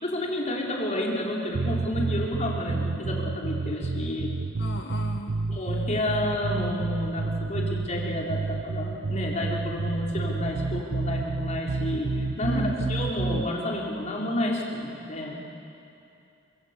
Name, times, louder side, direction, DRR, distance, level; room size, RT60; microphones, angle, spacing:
voice 1, 0.0-4.3 5.5-15.5, left 1 dB, 35° left, -2 dB, 4.3 m, -30 dB
sound 1, 1.5-13.5, right 3 dB, 65° right, 0.6 m, -30 dB
voice 2, 4.6-5.4 12.5-12.9, left 1 dB, 55° left, 3 dB, 1.3 m, -37 dB
27.5 x 25.5 x 8.3 m, 2.7 s
head